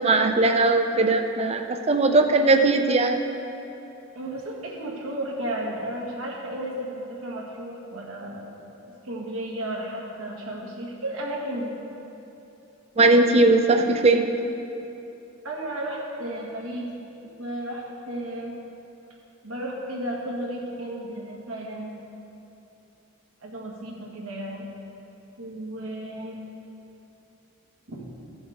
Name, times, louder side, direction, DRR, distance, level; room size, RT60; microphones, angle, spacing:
voice 1, 0.0-3.2 13.0-14.3, right 2 dB, 30° right, 6 dB, 0.5 m, -19 dB
voice 2, 4.2-11.8 15.4-16.9 17.2-18.5 19.4-21.9 23.4-24.6 25.4-26.4 27.9-28.1, right 1 dB, 85° right, -3 dB, 1.8 m, -33 dB
15.0 x 7.1 x 3.6 m, 2.9 s
head